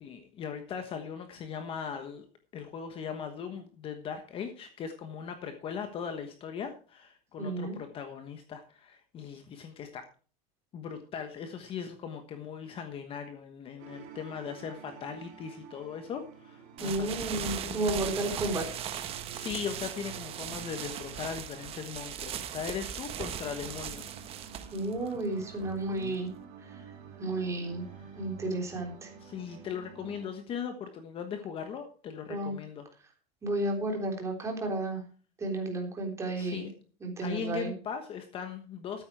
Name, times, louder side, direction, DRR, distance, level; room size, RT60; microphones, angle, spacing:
voice 1, 0.0-2.2 2.5-10.0 10.7-18.4 19.3-24.2 24.5-25.2 28.0-28.2 29.2-32.9 36.4-36.7 37.2-39.1, left 7 dB, 30° left, 7 dB, 1.3 m, -39 dB
voice 2, 7.4-7.7 16.8-18.6 24.7-26.3 26.6-26.9 27.2-27.8 28.2-29.1 32.3-32.5 33.4-35.0 35.4-36.7 37.0-37.7, right 2 dB, 15° right, 2 dB, 3.6 m, -32 dB
sound 1, 13.8-30.3, right 7 dB, 50° right, 3.6 m, -50 dB
sound 2, 16.8-26.4, right 9 dB, 30° right, 1.3 m, -39 dB
13.5 x 8.8 x 4.7 m, 0.40 s
supercardioid pair, 160°, 19 cm